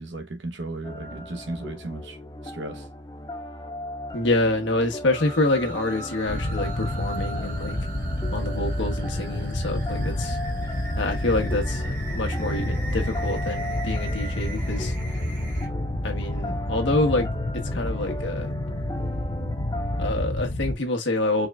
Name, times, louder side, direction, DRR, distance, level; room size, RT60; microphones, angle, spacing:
voice 1, 0.0-2.2 2.4-2.8, right 2 dB, 80° right, 1.0 m, -35 dB
sound 1, 0.8-20.1, left 1 dB, 20° left, 0.5 m, -37 dB
voice 2, 4.1-7.8 8.3-10.4 11.0-14.9 16.0-17.3 17.7-18.5 20.0-21.5, left 2 dB, 85° left, 1.2 m, -26 dB
sound 2, 5.1-15.7, right 3 dB, 45° right, 1.2 m, -41 dB
sound 3, 6.3-20.8, left 1 dB, 40° left, 0.9 m, -29 dB
4.7 x 3.3 x 2.4 m
head